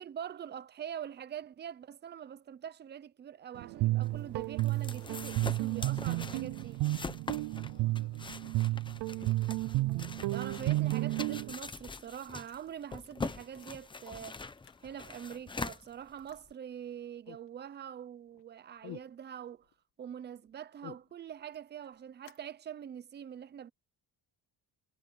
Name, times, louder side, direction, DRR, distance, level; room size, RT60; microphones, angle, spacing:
voice 1, 0.0-6.8 10.3-14.4 14.8-19.7 20.0-23.7, right 9 dB, 25° right, 0.6 m, -44 dB
Guitar, 3.5-11.5, right 19 dB, 75° right, 0.7 m, -32 dB
sound 1, 4.0-16.5, left 4 dB, 10° left, 0.7 m, -44 dB
sound 2, 4.2-6.3 6.6-7.7 8.0-8.1 8.3-9.0 9.4-9.5 9.7-16.9 17.2-18.0 18.3-19.8 20.1-22.5, left 16 dB, 85° left, 2.2 m, -57 dB
voice 2, 7.4-9.6, left 13 dB, 60° left, 7.3 m, -63 dB
cardioid pair, 160°, 41 cm